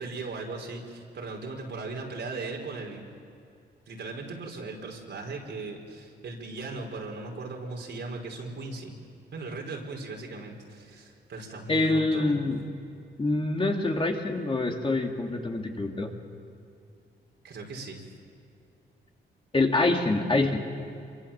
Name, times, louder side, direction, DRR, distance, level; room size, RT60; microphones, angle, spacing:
voice 1, 0.0-3.1 3.9-8.9 9.3-12.5 17.4-18.0, right 3 dB, 70° right, 0 dB, 4.8 m, -38 dB
voice 2, 11.7-12.6 13.2-16.1 19.5-20.6, left 2 dB, 30° left, 1 dB, 2.9 m, -25 dB
26.5 x 24.0 x 7.4 m, 2.5 s
cardioid pair, 85°, 19 cm